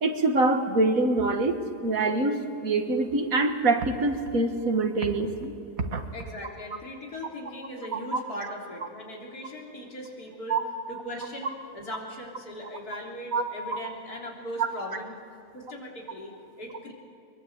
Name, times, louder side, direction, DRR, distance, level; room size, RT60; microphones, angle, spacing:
voice 1, 0.0-5.5 5.8-6.1 7.9-8.2 10.5-10.6 13.3-13.4, right 2 dB, 65° right, 6 dB, 2.0 m, -25 dB
voice 2, 6.1-10.6 10.9-15.2 15.5-16.9, equal, 90° left, -1 dB, 4.0 m, -39 dB
22.5 x 22.5 x 8.0 m, 2.6 s
omnidirectional pair, 1.6 m